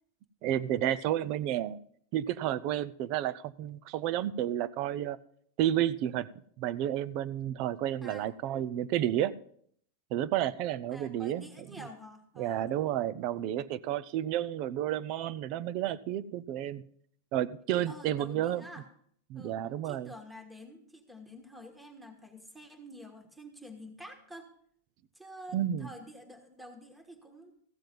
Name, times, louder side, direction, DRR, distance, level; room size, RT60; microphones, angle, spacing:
voice 1, 0.4-1.8 2.1-5.2 5.6-6.3 6.6-9.3 10.1-11.5 12.4-16.8 17.3-18.6 19.3-20.1 25.5-25.9, right 12 dB, 45° right, 18 dB, 0.5 m, -31 dB
voice 2, 10.9-12.7 17.9-18.8 19.3-19.6 19.8-24.5 25.1-27.5, equal, 5° right, 5 dB, 1.5 m, -48 dB
14.5 x 7.6 x 5.3 m, 0.63 s
supercardioid pair, 140°, 0 cm